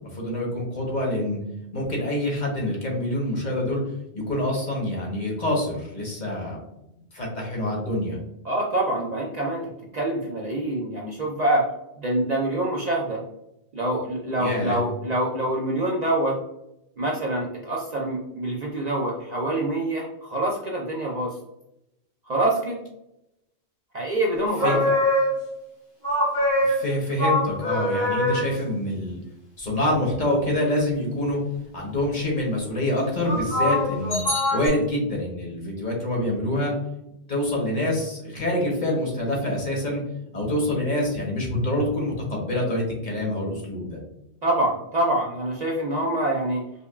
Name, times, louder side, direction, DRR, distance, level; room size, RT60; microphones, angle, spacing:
voice 1, 0.1-1.4 1.7-3.8 4.1-6.6 7.1-8.2 14.4-14.8 24.6-24.8 26.6-29.2 29.6-31.4 31.7-34.2 34.5-36.7 37.3-40.0 40.3-44.0, left 1 dB, 45° left, -1 dB, 1.0 m, -26 dB
voice 2, 8.4-9.7 9.9-11.7 12.0-13.2 13.7-16.4 17.0-21.3 22.3-22.8 23.9-25.0 44.4-46.6, right 1 dB, 50° right, -2 dB, 0.6 m, -25 dB
sound 1, 24.4-25.6 26.0-28.5 33.2-34.7, left 1 dB, 65° left, 1.6 m, -24 dB
5.3 x 2.3 x 2.3 m, 0.85 s
omnidirectional pair, 1.1 m